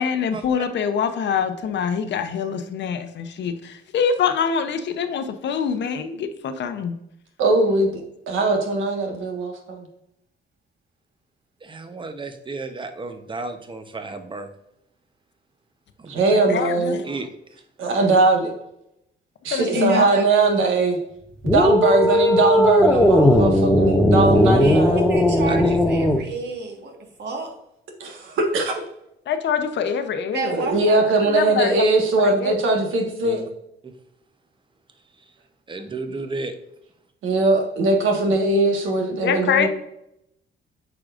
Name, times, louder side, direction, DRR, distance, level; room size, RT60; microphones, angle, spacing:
voice 1, 0.0-6.9 16.3-17.0 19.5-20.1 29.3-30.7 31.2-31.9 32.2-32.5 39.2-39.7, left 7 dB, 65° left, 8 dB, 0.8 m, -24 dB
voice 2, 7.4-7.9 8.3-9.8 16.1-17.0 17.8-18.5 19.4-21.0 21.4-25.0 26.1-26.2 28.0-28.7 30.4-33.4 37.2-39.7, right 3 dB, 85° right, 2 dB, 1.5 m, -20 dB
voice 3, 11.6-14.5 16.0-16.2 17.0-17.3 25.5-25.8 33.2-33.5 33.8-33.9 35.7-36.5, right 3 dB, 25° right, 8 dB, 0.9 m, -33 dB
voice 4, 19.6-20.2 24.6-27.5 30.3-31.1, right 4 dB, 60° right, 2 dB, 1.6 m, -32 dB
sound 1, 21.4-26.2, left 1 dB, 5° left, 0.7 m, -17 dB
8.3 x 4.8 x 2.5 m, 0.80 s
cardioid pair, 90°, 20 cm